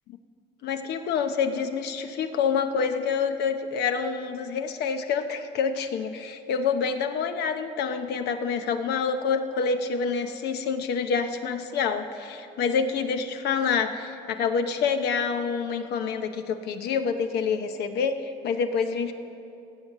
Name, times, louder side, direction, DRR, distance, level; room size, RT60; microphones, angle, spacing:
voice 1, 0.6-19.1, left 6 dB, 75° left, 8 dB, 0.9 m, -27 dB
16.5 x 7.5 x 6.7 m, 2.8 s
cardioid pair, 110°, 17 cm